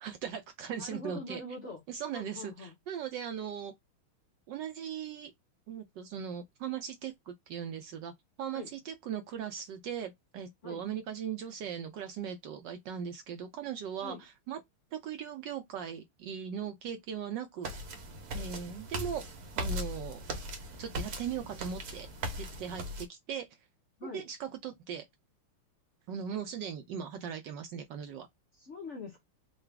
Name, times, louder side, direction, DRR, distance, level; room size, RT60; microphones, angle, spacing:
voice 1, 0.0-1.4 1.9-3.7 4.5-5.3 5.7-8.1 8.4-14.2 14.5-14.6 14.9-17.7 18.3-19.2 19.6-20.2 20.8-22.1 22.4-23.5 24.1-25.0 26.1-28.3, right 8 dB, 75° right, 1.0 m, -39 dB
voice 2, 0.7-1.8 2.1-2.7 8.5-8.7 10.6-10.8 14.0-14.2 24.0-24.3 28.5-29.2, left 3 dB, 55° left, 0.8 m, -43 dB
sound 1, 17.6-23.0, equal, 55° right, 1.2 m, -39 dB
3.9 x 2.4 x 3.3 m
omnidirectional pair, 2.4 m